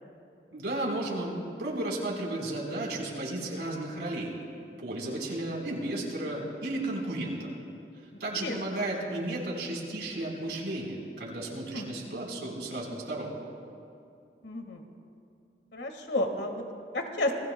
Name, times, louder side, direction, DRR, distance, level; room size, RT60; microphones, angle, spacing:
voice 1, 0.5-1.3 1.6-4.3 4.8-7.5 8.2-13.3, right 1 dB, 90° right, -1 dB, 4.0 m, -33 dB
voice 2, 8.4-8.8 11.7-11.9 14.4-14.8 15.7-16.6 16.9-17.3, left 1 dB, 85° left, 5 dB, 1.6 m, -31 dB
28.5 x 20.5 x 2.2 m, 2.6 s
head